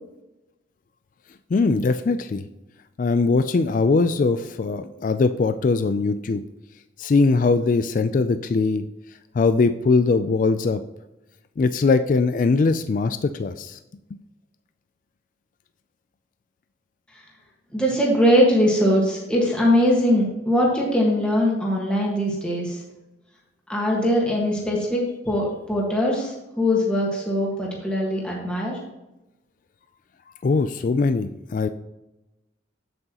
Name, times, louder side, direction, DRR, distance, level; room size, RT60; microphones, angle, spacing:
voice 1, 1.5-2.4 3.0-6.4 7.0-8.8 9.3-10.8 11.6-13.8 30.4-31.7, left 4 dB, 45° left, 10 dB, 0.3 m, -21 dB
voice 2, 17.7-22.8 23.7-28.8, equal, 5° left, -4 dB, 1.5 m, -21 dB
7.8 x 7.7 x 2.9 m, 0.98 s
head